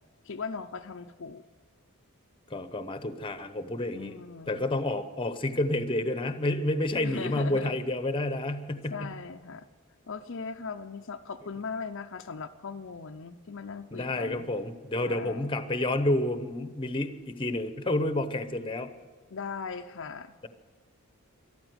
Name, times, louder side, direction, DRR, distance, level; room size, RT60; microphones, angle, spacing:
voice 1, 0.2-1.4 3.9-4.6 7.0-7.7 8.9-9.7 10.1-14.5 15.0-15.5 19.3-20.3, left 5 dB, 55° left, 6 dB, 0.6 m, -39 dB
voice 2, 2.5-9.2 13.9-18.9, left 1 dB, 20° left, 11 dB, 0.9 m, -30 dB
14.0 x 12.5 x 7.9 m, 1.5 s
head